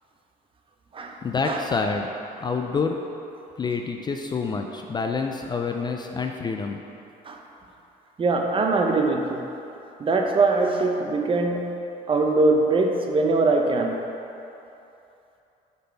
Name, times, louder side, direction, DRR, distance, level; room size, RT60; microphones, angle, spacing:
voice 1, 1.2-2.1 2.4-3.0 3.6-6.8, left 4 dB, 25° left, 3 dB, 0.3 m, -27 dB
voice 2, 8.2-9.5 10.0-11.7 12.1-14.0, right 3 dB, 30° right, 2 dB, 0.6 m, -22 dB
5.2 x 4.0 x 5.6 m, 2.8 s
cardioid pair, 110°, 17 cm